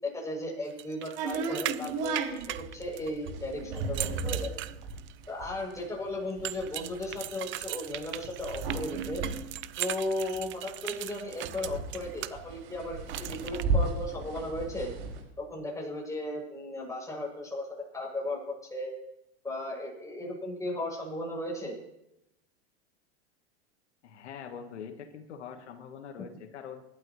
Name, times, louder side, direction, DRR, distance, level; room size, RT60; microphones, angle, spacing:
voice 1, 0.0-4.5 5.3-9.2 9.8-14.9 15.4-17.7 17.9-18.4 18.7-18.9 19.4-21.8, left 1 dB, 10° left, -2 dB, 7.4 m, -36 dB
sound 1, 0.8-3.3 3.8-5.2 6.4-12.3 13.1-13.6, right 15 dB, 35° right, 0.6 m, -39 dB
sound 2, 1.2-10.7 11.0-11.1 11.3-15.2, right 3 dB, 60° right, 5.5 m, -34 dB
voice 2, 24.0-26.8, left 7 dB, 80° left, 6 dB, 1.6 m, -43 dB
26.5 x 12.0 x 3.2 m, 0.86 s
hypercardioid pair, 105°, 34 cm